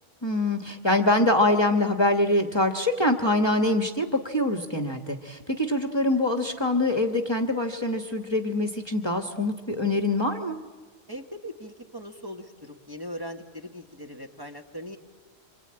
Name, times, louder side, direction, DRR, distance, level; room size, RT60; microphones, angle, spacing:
voice 1, 0.2-10.6, left 1 dB, 20° left, 5 dB, 1.3 m, -24 dB
voice 2, 11.1-15.0, equal, 20° right, 2 dB, 1.4 m, -40 dB
26.0 x 25.5 x 8.8 m, 1.4 s
omnidirectional pair, 1.2 m